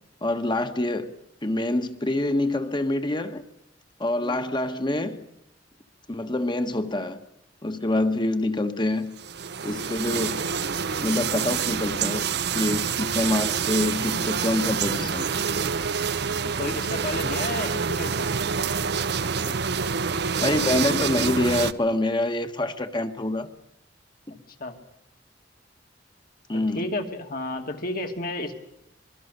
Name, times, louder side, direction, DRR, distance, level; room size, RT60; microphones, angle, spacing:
voice 1, 0.2-1.1 1.4-3.4 4.0-5.2 6.1-7.2 7.6-9.1 9.6-10.4 11.0-12.3 12.5-15.3 20.4-23.5 24.3-24.4 26.5-26.8, left 1 dB, 25° left, 1.5 m, -26 dB
sound 1, 9.2-21.7, right 6 dB, 65° right, 0.8 m, -27 dB
voice 2, 16.3-18.3 19.4-19.6 24.5-24.8 26.5-28.5, left 2 dB, 55° left, 2.5 m, -33 dB
26.0 x 22.0 x 6.8 m
head